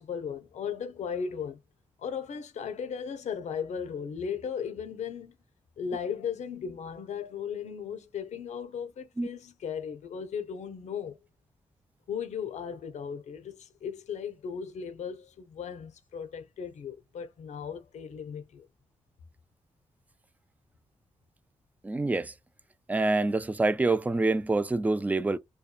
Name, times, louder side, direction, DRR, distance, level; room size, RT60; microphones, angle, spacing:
voice 1, 0.0-1.6 2.0-5.3 5.8-11.2 12.1-18.7, left 7 dB, 75° left, 0.6 m, -36 dB
voice 2, 21.8-22.3 22.9-25.4, right 2 dB, 15° right, 0.4 m, -26 dB
2.7 x 2.2 x 2.2 m
cardioid pair, 60°, 12 cm